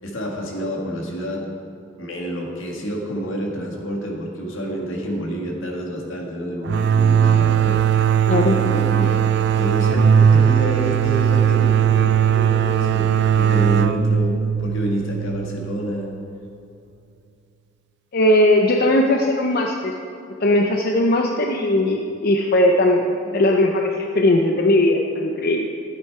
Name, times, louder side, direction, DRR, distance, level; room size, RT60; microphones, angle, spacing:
voice 1, 0.0-1.5 2.0-7.8 8.3-9.2 9.5-16.1, equal, 75° left, -1 dB, 1.9 m, -28 dB
sound 1, 6.7-16.2, right 8 dB, 60° right, 0.4 m, -18 dB
voice 2, 18.1-20.0 20.4-25.7, left 1 dB, 50° left, 2 dB, 0.6 m, -18 dB
13.0 x 8.4 x 4.7 m, 2.6 s
head